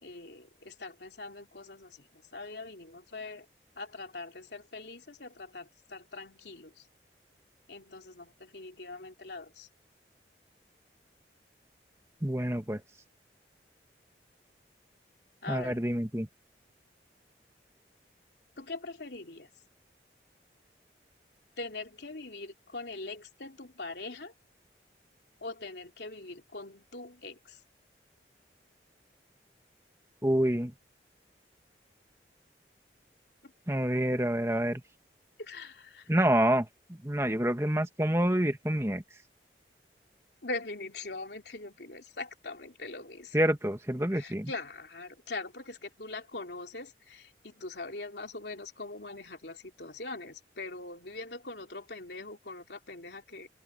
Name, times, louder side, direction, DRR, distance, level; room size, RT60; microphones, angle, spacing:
voice 1, 0.0-3.5 3.8-6.8 7.7-9.7 15.4-15.8 18.6-19.5 21.6-24.3 25.4-27.6 33.4-33.5 35.4-36.1 40.4-43.4 44.1-53.5, left 3 dB, 75° left, 2.9 m, -42 dB
voice 2, 12.2-12.8 15.5-16.3 30.2-30.7 33.7-34.8 36.1-36.7 37.0-39.0 43.3-44.5, right 1 dB, 15° right, 1.7 m, -27 dB
open air
head